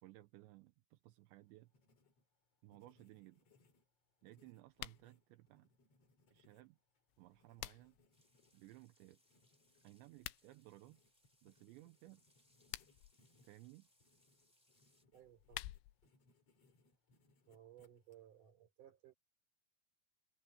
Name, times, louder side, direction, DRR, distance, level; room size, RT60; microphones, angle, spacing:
voice 1, 0.0-1.7 2.6-3.5 4.2-5.7 6.3-6.8 7.2-8.0 8.5-9.2 9.8-11.0 11.4-12.2 13.4-13.9, right 18 dB, 80° right, 2.9 m, -59 dB
Writing, 1.3-18.5, left 3 dB, 35° left, 3.7 m, -75 dB
sound 1, 4.7-5.1 7.1-8.1 10.1-10.5 12.5-13.1 15.1-16.1, left 18 dB, 85° left, 3.1 m, -50 dB
sound 2, 8.1-15.0, left 1 dB, 5° left, 6.4 m, -76 dB
voice 2, 15.1-15.7 17.5-19.2, right 11 dB, 45° right, 4.7 m, -61 dB
omnidirectional pair, 5.7 m